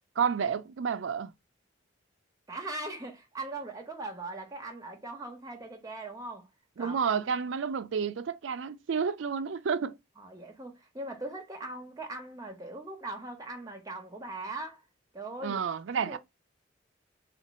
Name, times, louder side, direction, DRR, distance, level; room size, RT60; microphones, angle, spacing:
voice 1, 0.2-1.3 6.8-10.0 15.4-16.2, right 6 dB, 70° right, 0.4 m, -30 dB
voice 2, 2.5-6.5 6.8-7.0 10.2-14.8 15.1-15.6 15.9-16.2, right 2 dB, 20° right, 0.9 m, -40 dB
3.6 x 2.5 x 4.1 m
head